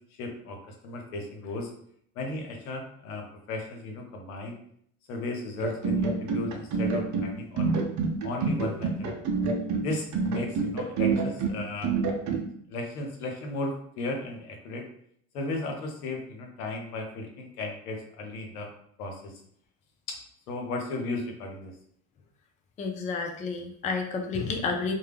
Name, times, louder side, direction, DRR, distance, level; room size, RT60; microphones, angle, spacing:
voice 1, 0.2-1.7 2.2-4.6 5.1-7.7 8.2-9.1 9.8-11.9 12.7-14.8 15.3-18.7 19.0-19.3 20.5-21.7, left 2 dB, 85° left, 2 dB, 0.8 m, -35 dB
sound 1, 5.6-12.4, right 4 dB, 40° right, 0.6 m, -27 dB
voice 2, 22.8-24.9, left 4 dB, 20° left, 3 dB, 0.3 m, -30 dB
2.2 x 2.0 x 3.3 m, 0.66 s
hypercardioid pair, 80°, 44 cm